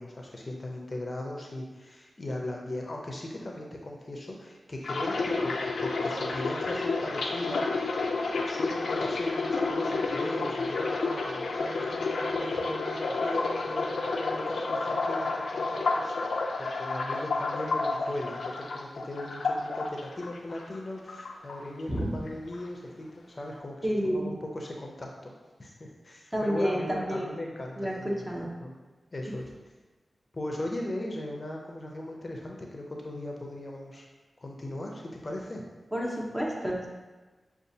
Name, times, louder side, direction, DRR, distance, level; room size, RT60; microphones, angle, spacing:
voice 1, 0.0-7.7 8.5-25.3 25.6-28.3 28.6-28.7 29.1-29.5 30.3-34.1 34.4-35.6, left 1 dB, 40° left, 0 dB, 0.6 m, -38 dB
sound 1, 4.8-20.8 21.1-22.0 22.3-22.6, left 3 dB, 85° left, 0.4 m, -30 dB
voice 2, 23.8-24.3 26.3-27.4 27.8-28.5 29.2-29.3 35.9-36.9, equal, 15° right, -3 dB, 0.9 m, -30 dB
6.4 x 2.4 x 2.7 m, 1.3 s
cardioid pair, 55°, 0 cm